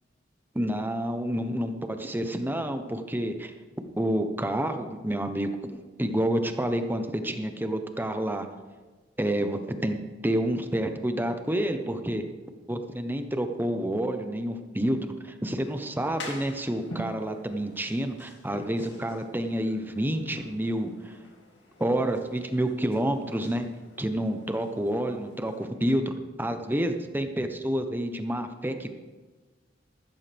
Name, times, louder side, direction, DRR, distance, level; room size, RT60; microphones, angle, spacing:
voice 1, 0.5-3.5 4.0-8.5 9.2-10.0 10.2-12.2 12.7-21.2 21.8-23.6 24.0-26.1 26.4-28.9, right 1 dB, 10° right, 7 dB, 0.9 m, -29 dB
sound 1, 15.6-25.7, left 1 dB, 70° left, 2.4 m, -46 dB
13.5 x 13.5 x 3.5 m, 1.3 s
head